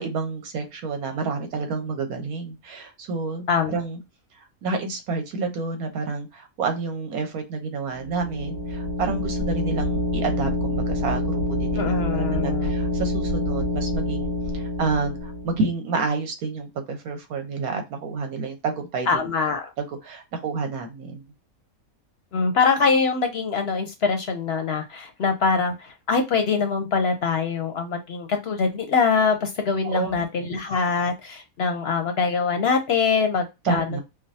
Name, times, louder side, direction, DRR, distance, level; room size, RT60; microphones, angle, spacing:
voice 1, 0.0-4.0 4.3-19.2 19.8-21.2 29.8-30.6 33.6-34.0, right 4 dB, 85° right, 5 dB, 1.4 m, -29 dB
sound 1, 7.9-15.7, left 1 dB, 65° right, 2.5 m, -26 dB
voice 2, 11.8-12.7 19.1-19.7 22.3-34.0, left 5 dB, 60° left, 6 dB, 0.7 m, -23 dB
4.9 x 2.0 x 2.7 m, 0.23 s
omnidirectional pair, 1.5 m